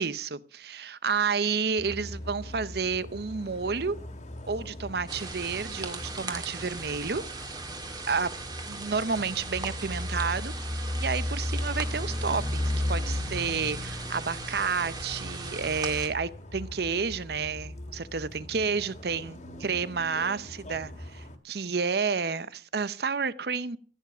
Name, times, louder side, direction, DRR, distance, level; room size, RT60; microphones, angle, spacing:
voice 1, 0.0-4.0 4.5-7.2 8.1-8.3 8.7-10.7 10.9-23.8, right 5 dB, 60° right, 0.7 m, -30 dB
sound 1, 1.8-21.4, left 1 dB, 40° left, 1.9 m, -37 dB
sound 2, 5.1-16.1, right 3 dB, 20° right, 1.9 m, -39 dB
15.5 x 9.3 x 6.0 m
head